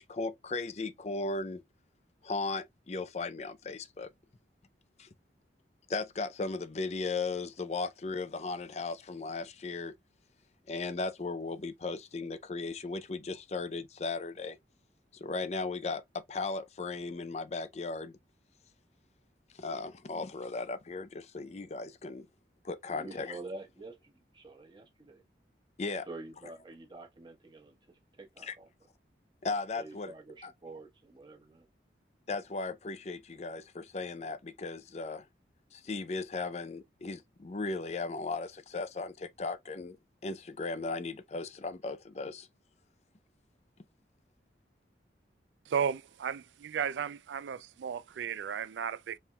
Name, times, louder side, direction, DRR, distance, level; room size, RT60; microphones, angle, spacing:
voice 1, 0.0-1.6 2.2-4.1 5.0-5.1 5.9-10.0 10.7-14.6 15.1-18.2 19.5-22.3 22.6-23.4 25.8-26.1 28.4-28.5 29.4-30.1 30.4-30.5 32.3-35.3 35.7-40.0 40.2-42.5, left 3 dB, 35° left, 0.5 m, -36 dB
voice 2, 22.9-25.2 26.1-28.7 29.7-31.6, right 2 dB, 25° right, 1.1 m, -47 dB
voice 3, 45.7-49.2, right 7 dB, 85° right, 0.4 m, -34 dB
4.3 x 3.5 x 2.2 m
head